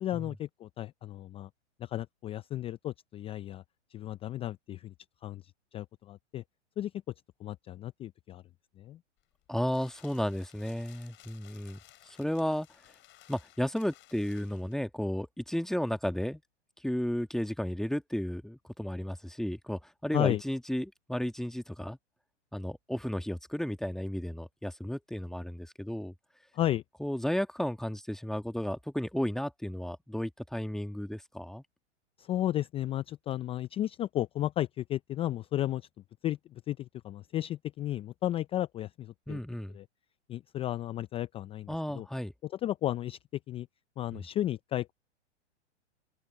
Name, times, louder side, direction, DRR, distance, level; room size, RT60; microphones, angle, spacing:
voice 1, 0.0-1.5 1.8-3.6 3.9-4.9 5.2-5.4 5.7-6.4 6.8-6.9 7.4-8.4 8.8-9.0 20.1-20.4 26.5-26.8 32.2-35.8 36.2-39.4 39.7-39.8 40.3-42.1 42.6-43.2 43.5-43.7 44.0-44.9, left 13 dB, 15° left, 0.5 m, -33 dB
sound 1, 9.2-14.9, left 15 dB, 35° left, 4.7 m, -58 dB
voice 2, 9.5-11.8 12.0-12.7 13.3-16.4 16.8-22.0 22.5-26.1 27.0-31.6 39.3-39.8 41.7-42.3 44.1-44.3, equal, ahead, 1.7 m, -33 dB
open air
hypercardioid pair, 120°, 35 cm